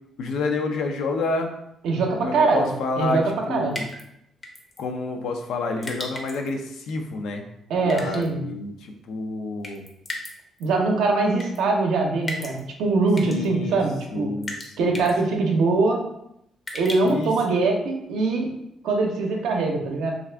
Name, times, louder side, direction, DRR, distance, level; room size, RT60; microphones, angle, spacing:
voice 1, 0.2-1.5 2.2-3.2 3.5-3.9 4.8-7.4 7.7-9.9 13.2-13.8 14.1-15.1 15.4-15.5 17.0-17.3, left 3 dB, 80° left, 4 dB, 0.4 m, -29 dB
voice 2, 1.8-2.7 3.0-3.8 7.7-8.5 10.6-14.3 14.8-16.0 16.7-18.5 18.8-20.1, right 3 dB, 85° right, 1 dB, 0.5 m, -22 dB
sound 1, 3.7-4.0 4.4-4.8 5.8-6.5 7.9-8.3 9.6-10.3 10.6-10.7 11.4-11.6 12.3-12.6 13.1-13.5 14.4-14.7 14.9-15.1 16.7-17.2, left 1 dB, 30° left, 0.6 m, -34 dB
2.4 x 2.4 x 3.3 m, 0.79 s
cardioid pair, 90°, 0 cm